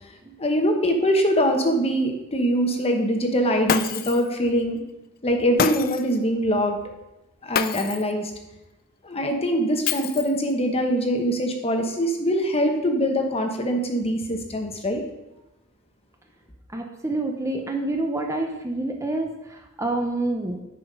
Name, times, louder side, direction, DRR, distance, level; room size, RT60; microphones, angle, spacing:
voice 1, 0.4-4.8 5.2-6.8 7.4-8.3 9.0-15.0, equal, 30° left, 4 dB, 1.1 m, -23 dB
Shatter, 3.7-4.3 5.6-6.2 7.5-8.1 9.9-10.5, left 8 dB, 45° left, 0.4 m, -26 dB
voice 2, 16.7-20.6, right 2 dB, 15° right, 2 dB, 0.7 m, -27 dB
9.7 x 5.0 x 5.3 m, 0.96 s
head